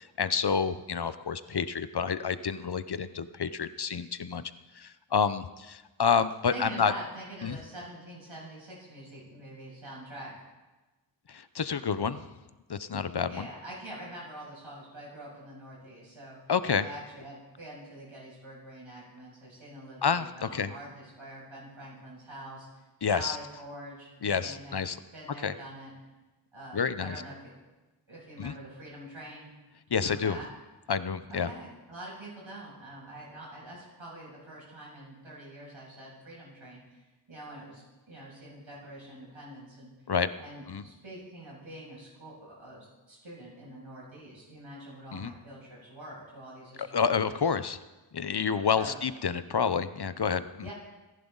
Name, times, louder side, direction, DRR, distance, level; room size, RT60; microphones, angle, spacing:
voice 1, 0.0-4.4 4.8-6.9 7.4-7.6 11.3-12.3 12.7-13.5 16.5-16.8 20.0-20.7 23.0-23.4 24.2-25.0 25.4-25.5 26.7-27.2 28.4-28.5 29.9-30.4 30.9-31.5 40.1-40.3 40.7-40.8 45.1-45.3 46.8-47.8 48.1-50.4, left 6 dB, 55° left, 13 dB, 0.8 m, -29 dB
voice 2, 6.5-10.3 13.2-16.4 16.8-24.8 25.1-25.9 26.5-27.5 28.1-29.5 29.9-30.5 31.3-39.9 40.4-47.5 48.7-49.0 50.6-50.7, right 1 dB, 80° right, -5 dB, 7.4 m, -45 dB
28.0 x 11.0 x 4.0 m, 1.1 s
wide cardioid pair, 45°, 47 cm